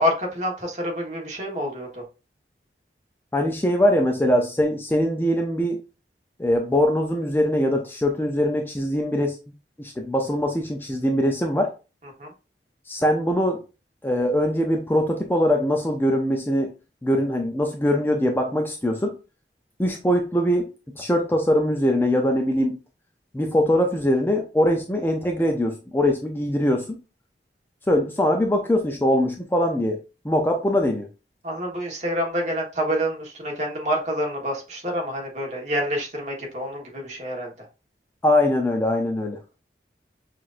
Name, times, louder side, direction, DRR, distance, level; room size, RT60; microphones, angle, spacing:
voice 1, 0.0-2.0 12.2-12.3 31.4-37.5, equal, 40° right, 0 dB, 1.2 m, -27 dB
voice 2, 3.3-5.8 6.4-9.4 9.8-11.7 12.9-13.6 14.0-16.7 17.0-19.1 19.8-22.8 23.3-27.0 27.9-30.0 30.2-31.1 38.2-39.4, equal, 10° left, 2 dB, 0.4 m, -22 dB
5.9 x 2.5 x 2.5 m, 0.31 s
head